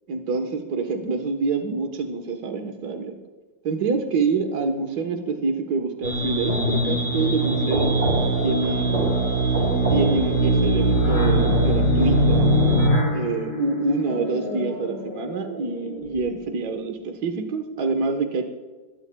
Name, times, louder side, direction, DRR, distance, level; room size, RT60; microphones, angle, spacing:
voice 1, 0.1-3.2 3.6-7.9 8.4-9.1 9.9-12.5 13.1-18.4, right 4 dB, 60° right, 5 dB, 1.7 m, -26 dB
sound 1, 6.0-12.9, right 3 dB, 40° right, 3.3 m, -21 dB
sound 2, 7.4-16.5, left 7 dB, 65° left, 5.1 m, -29 dB
27.5 x 13.0 x 2.3 m, 1.3 s
omnidirectional pair, 2.0 m